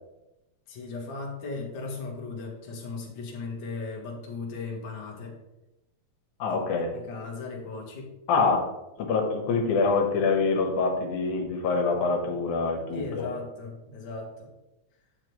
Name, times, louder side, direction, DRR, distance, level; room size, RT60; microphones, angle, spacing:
voice 1, 0.7-5.3 6.5-6.6 6.9-8.1 12.9-14.5, left 4 dB, 45° left, -1 dB, 1.9 m, -37 dB
voice 2, 6.4-6.9 8.3-8.6 9.0-13.3, left 4 dB, 85° left, 2 dB, 2.6 m, -25 dB
8.5 x 6.7 x 3.1 m, 0.94 s
omnidirectional pair, 3.4 m